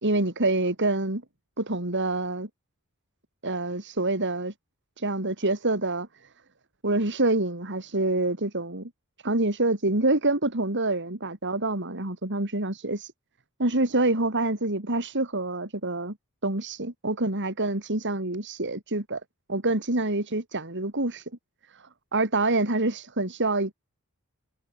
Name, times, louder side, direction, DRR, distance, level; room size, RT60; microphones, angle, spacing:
voice 1, 0.0-1.2 1.6-2.5 3.4-4.5 5.0-6.1 6.8-8.9 9.2-13.1 13.6-16.2 16.4-19.2 19.5-21.2 21.7-23.7, right 2 dB, 55° right, 3.7 m, -26 dB
head